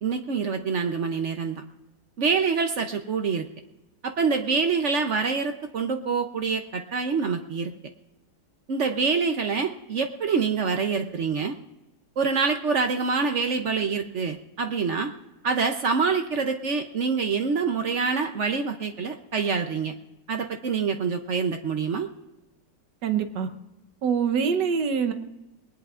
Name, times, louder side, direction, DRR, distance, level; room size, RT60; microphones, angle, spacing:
voice 1, 0.0-1.6 2.2-3.5 4.0-7.7 8.7-11.6 12.2-15.1 15.4-19.9 20.3-22.1, right 5 dB, 55° right, 6 dB, 0.9 m, -26 dB
voice 2, 23.0-23.5 24.0-25.1, right 6 dB, 90° right, 8 dB, 1.6 m, -24 dB
21.0 x 19.0 x 2.5 m, 0.98 s
omnidirectional pair, 1.8 m